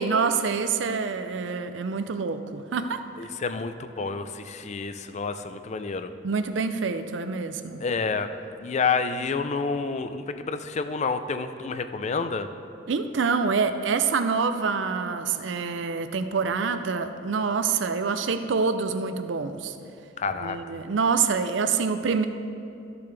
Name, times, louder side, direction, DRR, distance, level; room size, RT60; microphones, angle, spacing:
voice 1, 0.0-3.0 6.2-7.8 12.9-19.7 20.4-22.3, right 5 dB, 75° right, 9 dB, 0.5 m, -26 dB
voice 2, 3.2-6.1 7.8-8.3 8.6-12.5 20.2-20.8, left 4 dB, 40° left, 9 dB, 0.4 m, -29 dB
13.5 x 6.9 x 3.3 m, 2.6 s
head